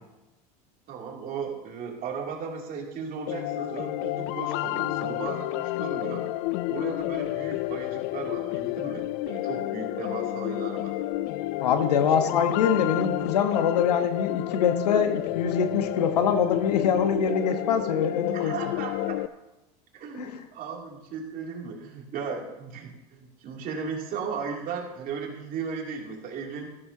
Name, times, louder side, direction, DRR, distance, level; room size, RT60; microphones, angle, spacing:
voice 1, 0.9-6.2 6.7-11.0 12.2-12.4 18.3-19.2 19.9-26.7, right 5 dB, 45° right, 0 dB, 2.9 m, -36 dB
sound 1, 3.3-19.3, left 16 dB, 60° left, 0.5 m, -30 dB
voice 2, 11.6-18.5 20.2-20.3, left 7 dB, 90° left, 7 dB, 1.3 m, -24 dB
14.0 x 13.0 x 2.9 m, 0.98 s
hypercardioid pair, 95°, 20 cm